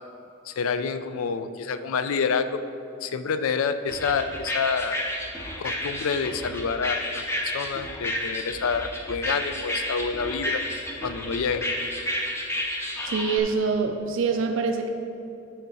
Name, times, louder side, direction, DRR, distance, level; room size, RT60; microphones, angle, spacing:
voice 1, 0.5-2.6 3.0-5.0 5.6-10.6 11.0-11.6, left 5 dB, 80° left, 11 dB, 0.4 m, -28 dB
sound 1, 3.9-13.4, left 1 dB, 10° left, 0.6 m, -31 dB
voice 2, 13.0-14.9, right 5 dB, 65° right, 5 dB, 0.4 m, -25 dB
11.5 x 4.6 x 4.0 m, 2.8 s
head